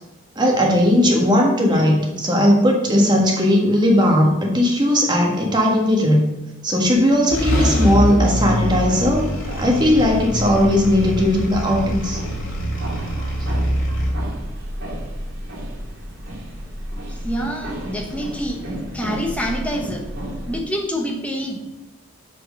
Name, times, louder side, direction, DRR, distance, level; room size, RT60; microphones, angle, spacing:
voice 1, 0.3-6.3 6.6-9.2 9.6-12.2, left 1 dB, 20° right, 0 dB, 1.5 m, -17 dB
sound 1, 6.9-7.0 7.3-14.1, equal, 70° left, 2.4 m, -23 dB
sound 2, 8.7-20.6, equal, 60° right, 2.2 m, -32 dB
voice 2, 17.1-18.6 18.9-20.0 20.5-21.6, equal, 5° left, 1 dB, 1.2 m, -26 dB
8.2 x 4.6 x 6.5 m, 1.0 s
head